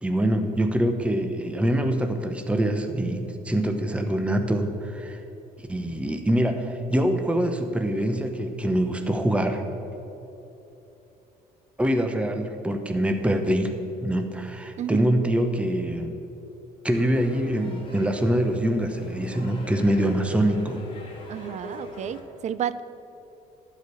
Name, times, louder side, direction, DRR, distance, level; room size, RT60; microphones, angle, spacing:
voice 1, 0.0-5.2 5.7-9.6 11.8-13.7 14.0-16.2 16.8-20.8, right 1 dB, 5° right, 6 dB, 0.9 m, -24 dB
sound 1, 16.8-22.2, left 2 dB, 30° left, 2.6 m, -42 dB
voice 2, 21.3-22.8, right 10 dB, 45° right, 16 dB, 0.4 m, -31 dB
12.0 x 5.1 x 8.4 m, 2.9 s
cardioid pair, 110°, 17 cm